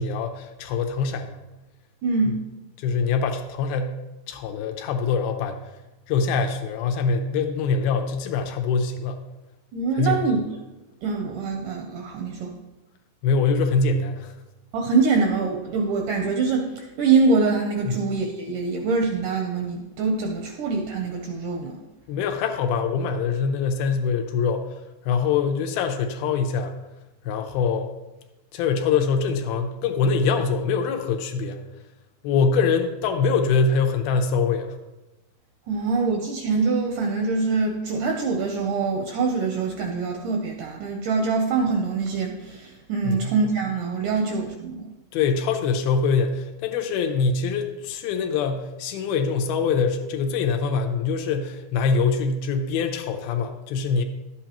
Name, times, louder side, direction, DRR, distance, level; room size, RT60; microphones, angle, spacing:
voice 1, 0.0-1.4 2.2-2.3 2.8-4.0 4.3-5.6 6.1-9.2 9.9-10.2 13.2-14.3 17.9-18.0 22.1-24.7 25.1-26.7 27.2-27.9 28.5-31.6 32.2-34.8 43.0-43.3 45.1-54.0, left 5 dB, 80° left, 5 dB, 2.4 m, -24 dB
voice 2, 2.0-2.4 9.7-10.4 11.0-12.5 14.7-21.8 35.7-44.9, right 4 dB, 80° right, 2 dB, 1.9 m, -24 dB
11.5 x 8.1 x 2.9 m, 1.1 s
omnidirectional pair, 4.4 m